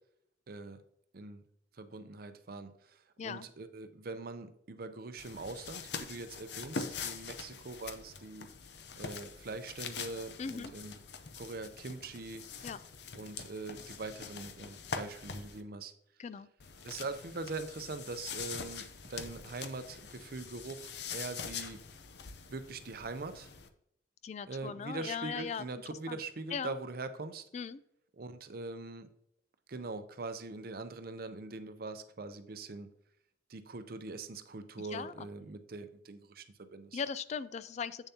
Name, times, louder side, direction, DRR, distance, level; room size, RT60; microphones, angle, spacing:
voice 1, 0.5-0.8 1.1-1.4 1.7-8.5 9.0-11.0 11.4-12.4 13.1-15.9 16.8-21.8 22.5-23.5 24.5-27.4 28.2-29.1 29.7-32.9 33.5-37.0, right 3 dB, 55° right, 10 dB, 0.6 m, -42 dB
sound 1, 5.2-15.6 16.6-23.7, left 5 dB, 70° left, 0.7 m, -44 dB
voice 2, 10.4-10.7 12.6-12.8 16.2-16.5 24.2-25.7 26.1-26.2 26.5-26.7 27.5-27.8 34.8-35.3 36.9-38.1, left 6 dB, 40° left, 15 dB, 0.3 m, -39 dB
8.1 x 6.9 x 2.8 m, 0.72 s
head